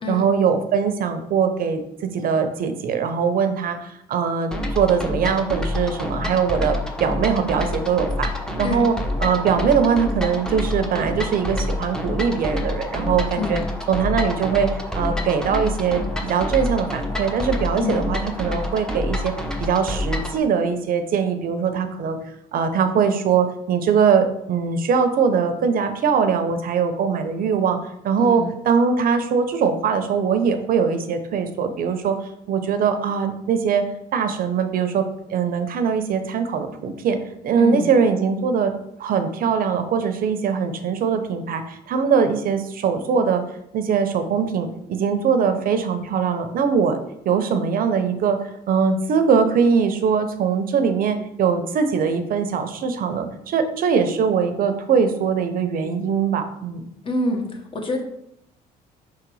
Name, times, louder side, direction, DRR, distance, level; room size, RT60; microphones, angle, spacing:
voice 1, 0.1-8.3 8.6-8.9 9.2-13.6 13.9-14.7 14.9-19.3 19.6-22.2 22.5-27.8 28.0-32.2 32.5-33.9 34.1-37.2 37.4-38.7 39.0-43.4 43.7-47.0 47.2-48.4 48.7-56.8, right 6 dB, 60° right, 8 dB, 0.8 m, -21 dB
sound 1, 4.5-20.4, left 1 dB, 5° left, 0.9 m, -27 dB
voice 2, 28.2-28.5 37.6-37.9 57.0-58.0, left 2 dB, 30° left, 2 dB, 1.4 m, -26 dB
5.3 x 3.9 x 4.8 m, 0.77 s
cardioid pair, 110°, 17 cm